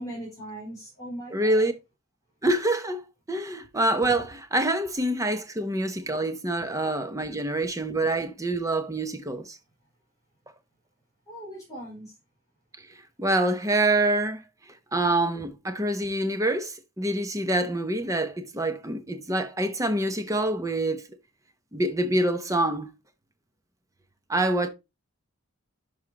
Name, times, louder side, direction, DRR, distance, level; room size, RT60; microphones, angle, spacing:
voice 1, 0.0-1.7 11.3-12.1, right 1 dB, 15° left, 4.6 m, -39 dB
voice 2, 1.3-1.7 2.4-3.0 3.3-9.6 13.2-14.4 14.9-21.1 21.7-22.9 24.3-24.7, right 1 dB, 15° right, 0.8 m, -26 dB
11.0 x 4.8 x 2.9 m
head